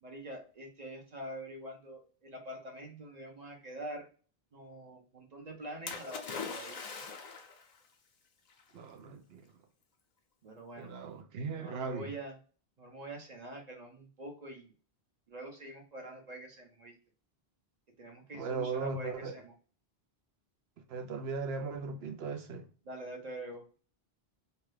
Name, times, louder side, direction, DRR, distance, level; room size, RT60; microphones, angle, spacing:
voice 1, 0.0-4.1 4.5-6.8 10.4-10.9 11.5-12.4 12.8-14.7 15.3-16.9 18.0-19.5 22.8-23.6, right 1 dB, 45° right, 0.8 m, -45 dB
Splash splatter, 5.9-7.7 8.6-8.7, left 5 dB, 50° left, 0.6 m, -41 dB
voice 2, 8.7-9.5 10.8-12.1 18.3-19.3 20.9-22.7, right 4 dB, 80° right, 0.9 m, -38 dB
2.8 x 2.3 x 3.2 m
omnidirectional pair, 1.0 m